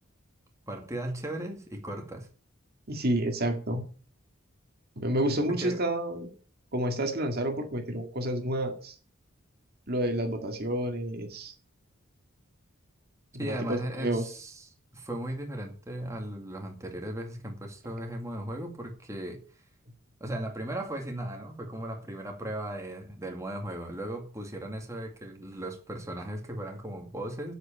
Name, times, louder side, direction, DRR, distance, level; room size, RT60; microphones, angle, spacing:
voice 1, 0.7-2.3 5.5-5.8 13.4-19.4 20.2-27.5, right 1 dB, 15° right, 2 dB, 2.2 m, -37 dB
voice 2, 2.9-3.8 5.0-6.3 6.7-8.9 9.9-11.5 13.3-14.2, right 1 dB, 50° right, 4 dB, 2.0 m, -29 dB
8.4 x 8.1 x 9.0 m, 0.40 s
head